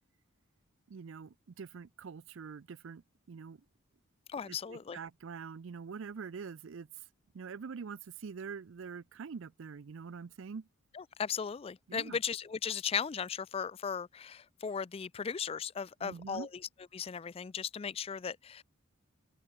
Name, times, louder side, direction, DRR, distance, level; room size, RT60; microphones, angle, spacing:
voice 1, 0.9-3.0 3.3-3.6 4.4-6.9 7.3-10.7 11.9-12.2 16.0-16.5, right 5 dB, 60° right, 0.4 m, -44 dB
voice 2, 4.3-5.0 10.9-16.5 16.9-18.6, left 7 dB, 25° left, 0.3 m, -37 dB
open air
head